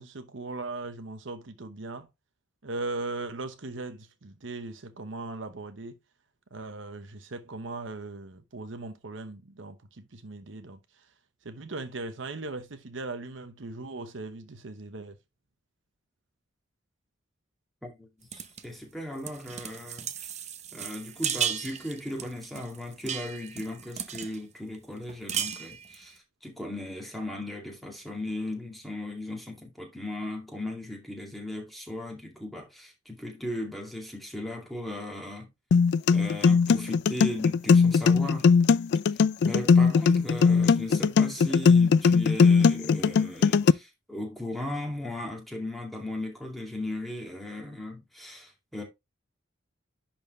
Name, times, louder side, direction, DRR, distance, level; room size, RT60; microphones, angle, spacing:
voice 1, 0.0-2.1 2.6-6.0 6.5-10.8 11.4-15.2, right 3 dB, 65° right, 1.0 m, -38 dB
voice 2, 17.8-20.3 20.7-35.5 36.1-38.5 39.1-48.8, left 1 dB, ahead, 2.3 m, -37 dB
sound 1, 18.3-18.7 19.2-24.4 24.7-24.8 25.1-26.1, right 8 dB, 35° right, 0.8 m, -35 dB
sound 2, 35.7-43.7, left 5 dB, 55° left, 0.3 m, -20 dB
10.5 x 4.4 x 3.2 m
head